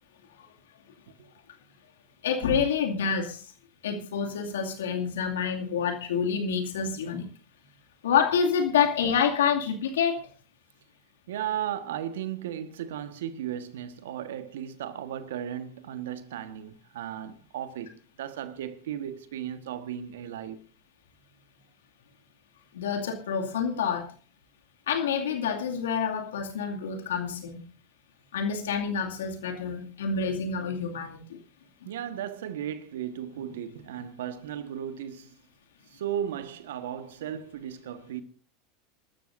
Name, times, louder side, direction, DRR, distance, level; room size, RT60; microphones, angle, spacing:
voice 1, 2.2-3.4 3.8-7.3 8.0-10.3 22.7-24.1 24.9-27.6 28.3-31.4, left 6 dB, 80° left, 2.4 m, -27 dB
voice 2, 11.3-20.6 31.8-35.3 35.9-38.2, right 10 dB, 75° right, 1.4 m, -35 dB
28.5 x 13.0 x 2.6 m
hypercardioid pair, 90°, 0 cm